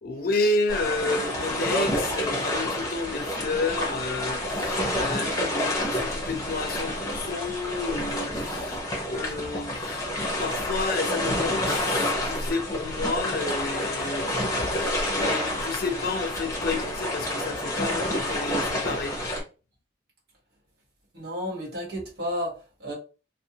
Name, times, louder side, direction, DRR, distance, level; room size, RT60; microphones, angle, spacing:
voice 1, 0.0-8.8 9.1-10.0 10.4-14.3 14.7-19.2, left 3 dB, 60° left, 0.5 m, -31 dB
sound 1, 0.7-19.4, left 1 dB, 20° left, 0.8 m, -28 dB
voice 2, 21.1-22.9, equal, 65° right, 1.1 m, -32 dB
2.5 x 2.1 x 2.8 m
head